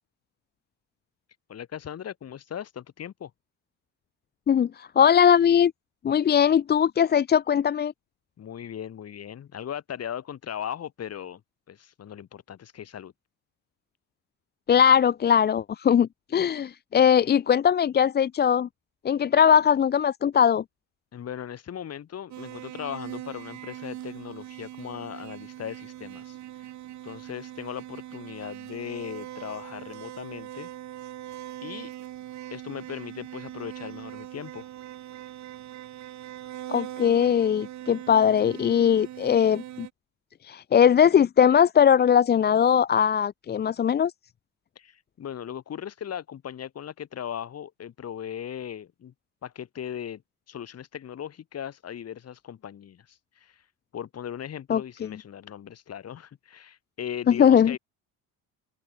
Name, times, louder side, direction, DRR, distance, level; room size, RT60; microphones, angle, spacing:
voice 1, 1.5-3.3 8.4-11.4 11.7-13.1 21.1-26.7 27.0-30.7 31.6-31.9 32.5-34.7 44.8-49.1 49.4-50.2 50.5-53.6 53.9-57.8, left 9 dB, 45° left, 6.4 m, -38 dB
voice 2, 4.5-5.7 6.0-7.9 14.7-18.7 19.0-20.6 36.7-39.9 40.4-44.1 54.7-55.1 57.3-57.8, left 8 dB, 30° left, 0.6 m, -20 dB
sound 1, 22.3-39.9, right 13 dB, 55° right, 1.8 m, -41 dB
open air
cardioid pair, 110°, 33 cm